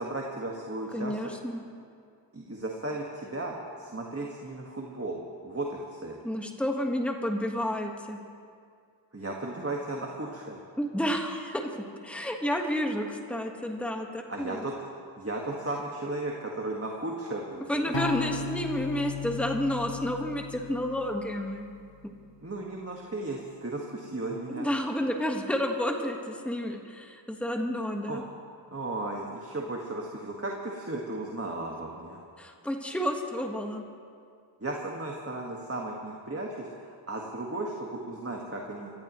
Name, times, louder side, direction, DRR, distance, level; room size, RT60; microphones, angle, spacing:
voice 1, 0.0-1.2 2.3-6.2 9.1-10.6 14.3-14.8 15.2-18.1 22.4-24.7 28.1-28.2 28.7-32.2 34.6-38.9, right 2 dB, 30° right, -1 dB, 1.7 m, -35 dB
voice 2, 0.9-1.6 6.2-8.2 10.8-11.7 12.0-14.7 17.7-21.6 24.5-28.2 32.4-33.8, equal, 5° left, 2 dB, 1.5 m, -30 dB
sound 1, 17.9-22.1, left 6 dB, 70° left, 0.9 m, -37 dB
24.5 x 16.0 x 3.1 m, 2.2 s
wide cardioid pair, 45°, 45 cm